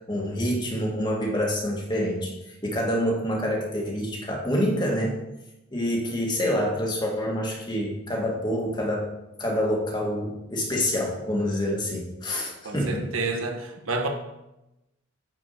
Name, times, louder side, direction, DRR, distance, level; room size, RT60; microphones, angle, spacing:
voice 1, 0.1-2.3 2.6-5.2 5.7-9.1 9.4-13.1, equal, 20° left, -1 dB, 1.8 m, -27 dB
voice 2, 12.6-14.1, right 3 dB, 85° right, 3 dB, 1.5 m, -29 dB
9.6 x 4.9 x 6.7 m, 0.95 s
head